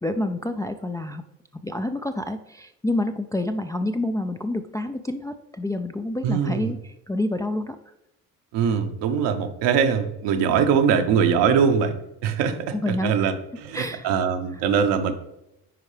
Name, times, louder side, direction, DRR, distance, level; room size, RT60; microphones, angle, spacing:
voice 1, 0.0-1.2 1.5-7.8 12.7-13.3 13.7-14.1, left 1 dB, 10° left, 7 dB, 0.3 m, -28 dB
voice 2, 6.2-6.7 8.5-15.1, right 7 dB, 65° right, 7 dB, 1.0 m, -22 dB
9.7 x 4.5 x 3.3 m, 0.87 s
hypercardioid pair, 55°, 45 cm